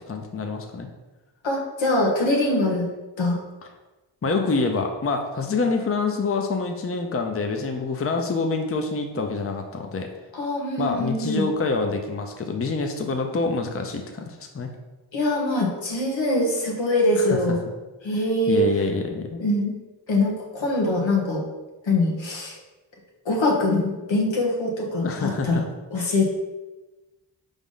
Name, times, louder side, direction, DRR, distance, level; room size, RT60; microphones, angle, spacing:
voice 1, 0.1-0.9 4.2-10.1 10.8-14.7 17.2-17.4 18.5-19.4 25.0-25.6, left 4 dB, 30° left, 4 dB, 0.6 m, -26 dB
voice 2, 1.4-2.9 3.2-3.4 10.3-11.5 15.1-17.6 18.0-18.6 19.4-19.8 20.1-21.4 21.8-22.5 23.2-25.6 25.9-26.3, left 2 dB, 85° left, -1 dB, 1.4 m, -23 dB
5.0 x 3.6 x 5.6 m, 1.1 s
wide cardioid pair, 100°, 44 cm